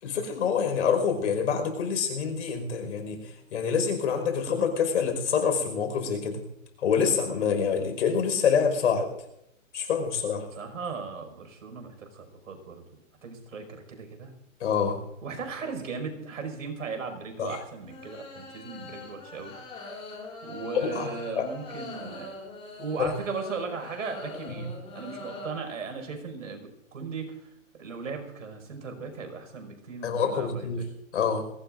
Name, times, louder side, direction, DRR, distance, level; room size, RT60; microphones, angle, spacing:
voice 1, 0.0-3.2 3.5-6.4 6.8-9.1 9.7-10.5 14.6-15.0 17.4-17.5 20.9-21.1 21.3-21.5 23.0-23.1 24.5-24.6 30.0-30.8 31.1-31.4, left 6 dB, 60° left, 5 dB, 5.3 m, -26 dB
voice 2, 10.5-12.8 13.2-14.3 15.2-19.5 20.4-22.4 22.8-30.9, right 5 dB, 75° right, 5 dB, 5.8 m, -37 dB
sound 1, 17.8-25.5, left 3 dB, 15° left, 6.2 m, -42 dB
23.0 x 19.0 x 2.6 m, 0.84 s
hypercardioid pair, 150°, 41 cm